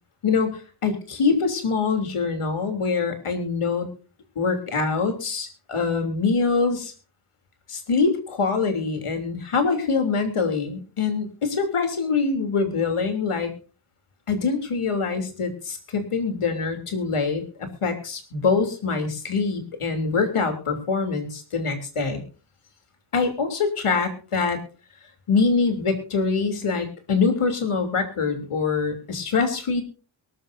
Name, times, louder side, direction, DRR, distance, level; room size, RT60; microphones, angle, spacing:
voice 1, 0.2-3.9 4.3-6.9 7.7-13.5 14.3-22.2 23.1-24.6 25.3-29.8, left 4 dB, 85° left, 6 dB, 3.2 m, -24 dB
23.0 x 13.0 x 2.7 m, 0.35 s
wide cardioid pair, 110°, 50 cm